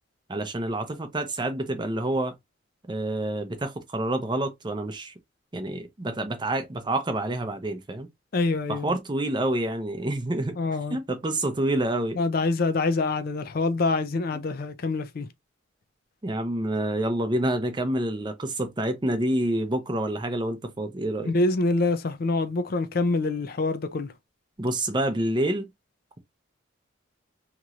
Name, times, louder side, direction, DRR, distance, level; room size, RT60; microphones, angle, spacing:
voice 1, 0.3-2.3 2.9-5.1 5.5-8.1 8.7-10.6 10.9-12.2 14.3-14.5 16.2-21.3 24.6-25.7, right 1 dB, 25° right, 0.6 m, -28 dB
voice 2, 8.3-8.8 10.6-11.0 12.2-15.3 21.3-24.1, left 3 dB, 50° left, 0.4 m, -25 dB
3.0 x 2.9 x 2.4 m
head